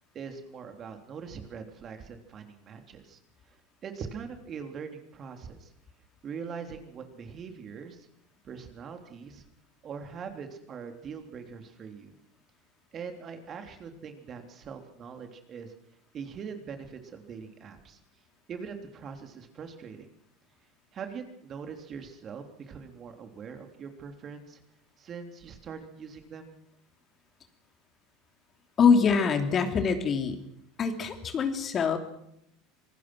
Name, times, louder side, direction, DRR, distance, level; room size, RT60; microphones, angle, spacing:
voice 1, 0.1-3.2 3.8-5.7 6.2-8.1 8.4-9.4 9.8-12.1 12.9-15.7 16.1-18.0 18.5-20.1 20.9-24.6 25.0-26.5, right 6 dB, 40° right, 5 dB, 3.4 m, -42 dB
voice 2, 28.8-30.4 30.8-32.0, left 6 dB, 35° left, 6 dB, 3.0 m, -24 dB
26.0 x 19.5 x 6.2 m, 0.77 s
hypercardioid pair, 80°, 0 cm